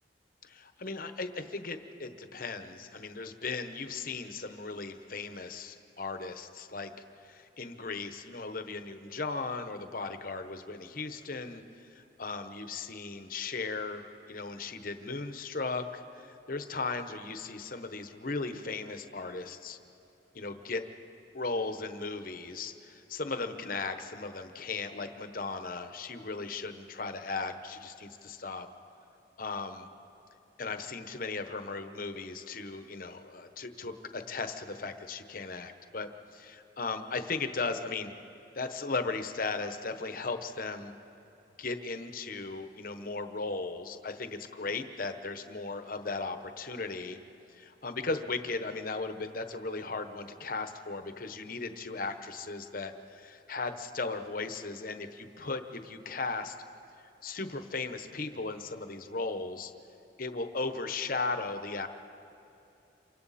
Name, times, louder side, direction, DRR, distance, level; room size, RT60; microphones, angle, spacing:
voice 1, 0.4-6.9 7.2-11.6 11.9-19.8 20.3-20.8 21.3-28.7 29.4-29.9 30.6-38.1 38.5-40.9 41.6-47.2 47.5-56.5 57.2-59.7 60.2-61.9, left 3 dB, 50° left, 8 dB, 1.0 m, -37 dB
28.0 x 24.0 x 4.2 m, 2.8 s
head